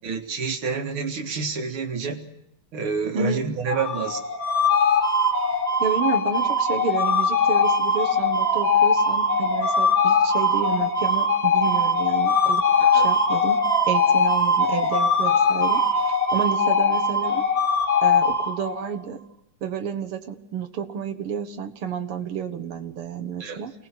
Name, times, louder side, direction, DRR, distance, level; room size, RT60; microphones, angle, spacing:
voice 1, 0.0-2.3 2.7-4.2 12.8-13.1 23.4-23.6, right 5 dB, 75° right, 5 dB, 2.8 m, -28 dB
voice 2, 3.1-3.5 5.8-12.7 12.9-15.8 16.3-17.4 18.0-19.2 19.6-23.7, right 7 dB, 90° right, 8 dB, 2.3 m, -30 dB
sound 1, 3.7-18.9, left 3 dB, 30° left, 3.0 m, -21 dB
29.0 x 19.5 x 6.0 m, 0.80 s
omnidirectional pair, 2.4 m